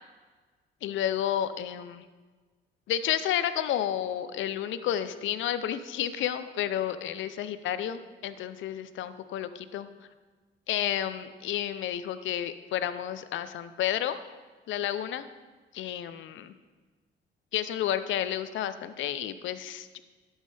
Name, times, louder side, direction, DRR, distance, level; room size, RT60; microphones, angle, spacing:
voice 1, 0.8-2.0 2.9-9.9 10.7-14.2 14.7-15.3 15.7-16.5 17.5-20.0, left 10 dB, 75° left, 12 dB, 0.6 m, -31 dB
12.0 x 7.2 x 3.3 m, 1.4 s
cardioid pair, 90°, 20 cm